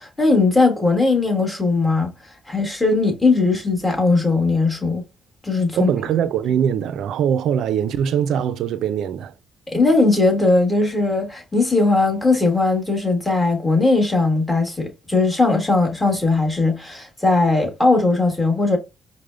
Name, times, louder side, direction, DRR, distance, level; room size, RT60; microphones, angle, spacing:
voice 1, 0.0-5.0 5.4-5.9 9.7-18.8, left 3 dB, 15° left, 1.4 m, -19 dB
voice 2, 5.8-9.3, right 8 dB, 75° right, 0.3 m, -22 dB
4.8 x 2.0 x 2.4 m
cardioid pair, 90°, 0 cm